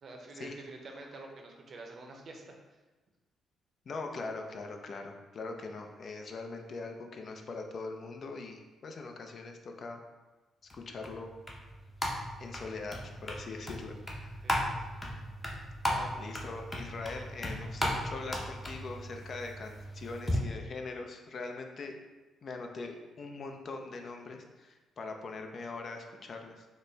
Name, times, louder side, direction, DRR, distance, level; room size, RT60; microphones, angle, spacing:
voice 1, 0.0-2.8 14.4-15.0 15.9-16.2, right 2 dB, 60° right, 1 dB, 0.6 m, -48 dB
voice 2, 3.9-10.0 10.7-11.3 12.4-14.4 16.2-21.9 22.4-26.7, left 3 dB, 55° left, 4 dB, 0.5 m, -42 dB
sound 1, 10.7-20.4, equal, 25° left, 0.7 m, -36 dB
4.1 x 2.1 x 3.3 m, 1.2 s
supercardioid pair, 60°, 0 cm